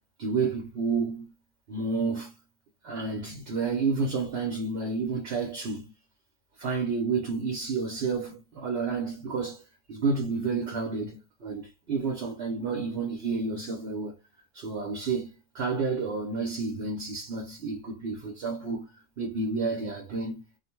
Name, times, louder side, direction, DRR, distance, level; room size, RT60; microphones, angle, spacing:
voice 1, 0.2-1.3 1.7-2.3 2.8-5.9 6.6-9.6 9.9-14.2 14.5-20.4, right 4 dB, 60° right, 0.9 m, -30 dB
2.6 x 2.1 x 2.9 m
omnidirectional pair, 1.2 m